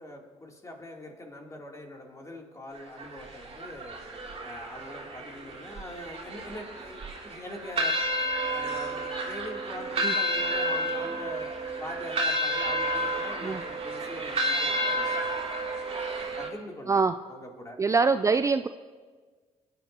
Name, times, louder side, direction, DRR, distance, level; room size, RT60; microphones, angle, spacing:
voice 1, 0.0-3.9 4.4-8.0 8.4-15.4 16.4-17.8, left 1 dB, 25° left, 0 dB, 2.9 m, -43 dB
sound 1, 2.7-16.5, equal, 45° right, 3.0 m, -31 dB
voice 2, 17.8-18.7, right 4 dB, 25° right, 10 dB, 0.4 m, -24 dB
21.0 x 10.5 x 2.8 m, 1.4 s
supercardioid pair, 65°, 13 cm